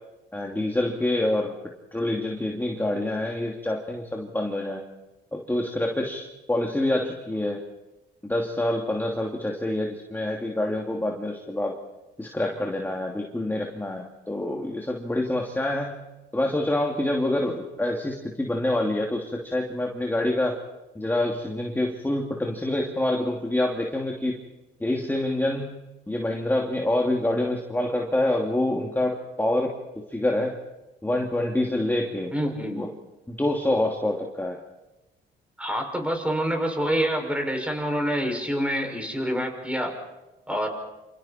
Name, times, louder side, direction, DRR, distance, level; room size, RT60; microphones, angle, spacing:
voice 1, 0.3-1.5 1.9-4.8 5.3-6.2 6.5-7.6 8.2-11.8 12.2-16.0 16.3-20.6 20.9-24.3 24.8-25.7 26.1-29.7 30.1-30.6 31.0-32.3 32.7-32.9 33.3-34.6, left 1 dB, 10° left, 0 dB, 2.8 m, -26 dB
voice 2, 32.3-32.8 35.6-39.9 40.5-40.7, equal, 5° right, 2 dB, 6.5 m, -27 dB
28.0 x 27.5 x 4.5 m, 1.0 s
cardioid pair, 90°, 20 cm